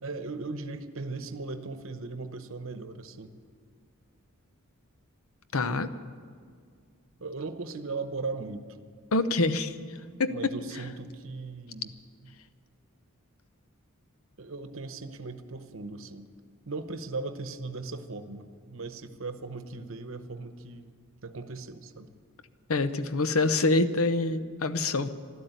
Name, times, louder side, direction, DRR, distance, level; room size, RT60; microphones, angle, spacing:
voice 1, 0.0-3.3 7.2-8.8 10.3-11.9 12.2-12.3 14.4-16.3 16.7-20.9 21.2-22.1, right 3 dB, 65° right, 10 dB, 0.9 m, -38 dB
voice 2, 5.5-5.9 9.1-9.7 10.2-10.4 22.7-25.1, left 2 dB, 80° left, 12 dB, 0.8 m, -25 dB
13.0 x 12.0 x 9.1 m, 2.1 s
head